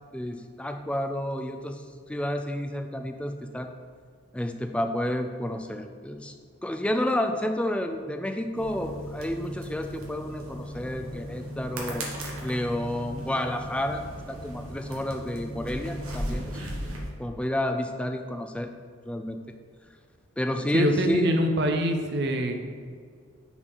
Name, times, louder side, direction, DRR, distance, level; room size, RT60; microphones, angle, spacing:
voice 1, 0.1-3.7 4.3-6.3 6.6-12.0 12.4-14.0 14.3-16.7 17.2-18.7 19.1-19.4 20.4-21.4, left 1 dB, 5° left, 6 dB, 0.3 m, -30 dB
sound 1, 8.5-17.1, equal, 80° right, 1.3 m, -36 dB
voice 2, 20.7-22.6, equal, 50° right, 5 dB, 0.7 m, -24 dB
5.8 x 4.1 x 5.4 m, 2.1 s
head